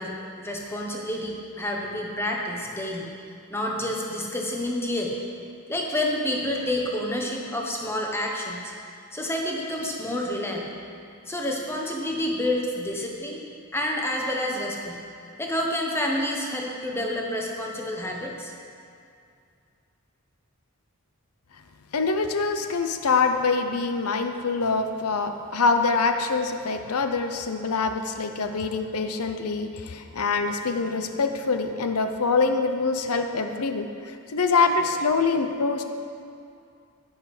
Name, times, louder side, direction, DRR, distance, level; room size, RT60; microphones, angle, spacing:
voice 1, 0.0-3.1 3.5-5.2 5.7-8.7 9.1-10.8 11.3-13.4 13.7-15.0 15.4-18.5, left 1 dB, 10° left, -1 dB, 1.2 m, -29 dB
voice 2, 21.9-35.8, left 4 dB, 90° left, 7 dB, 0.7 m, -25 dB
11.0 x 9.9 x 5.0 m, 2.4 s
head